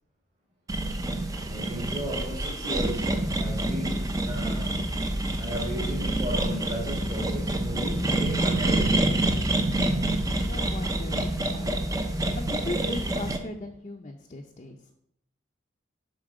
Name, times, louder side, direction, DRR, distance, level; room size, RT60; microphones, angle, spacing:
sound 1, 0.7-13.4, right 1 dB, 20° right, 0.6 m, -27 dB
voice 1, 1.5-4.8 5.4-9.2, equal, 35° right, -5 dB, 1.9 m, -35 dB
voice 2, 10.4-11.9 12.3-14.8, left 2 dB, 35° left, 1 dB, 0.6 m, -38 dB
7.5 x 5.4 x 4.9 m, 0.74 s
head